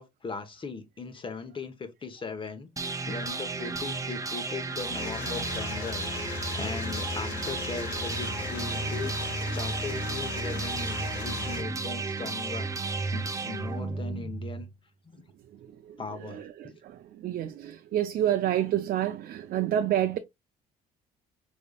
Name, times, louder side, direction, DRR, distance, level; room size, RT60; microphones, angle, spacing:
voice 1, 0.0-9.1 9.4-14.7 15.0-15.2 16.0-16.8, left 5 dB, 30° left, 1.1 m, -39 dB
sound 1, 2.8-14.7, right 3 dB, 20° right, 0.7 m, -33 dB
sound 2, 4.8-11.6, left 9 dB, 80° left, 0.5 m, -39 dB
voice 2, 16.8-20.2, right 11 dB, 60° right, 0.5 m, -28 dB
5.1 x 3.4 x 2.4 m
cardioid pair, 110°, 17 cm